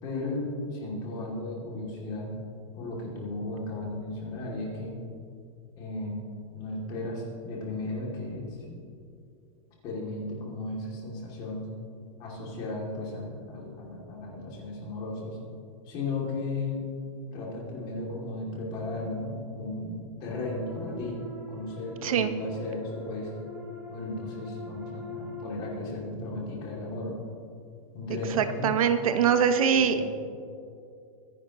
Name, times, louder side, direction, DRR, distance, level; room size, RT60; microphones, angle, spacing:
voice 1, 0.0-2.3 2.8-5.0 5.8-6.2 6.6-8.9 9.8-11.7 12.2-15.4 15.9-16.8 17.3-23.3 23.9-27.1 27.9-28.7 29.7-30.0, left 2 dB, 25° left, -3 dB, 2.6 m, -35 dB
sound 1, 20.3-25.7, left 2 dB, 10° right, 1.4 m, -43 dB
voice 2, 22.0-22.3 28.3-30.0, right 7 dB, 70° right, 9 dB, 0.9 m, -23 dB
23.0 x 11.0 x 3.0 m, 2.5 s
supercardioid pair, 180°, 19 cm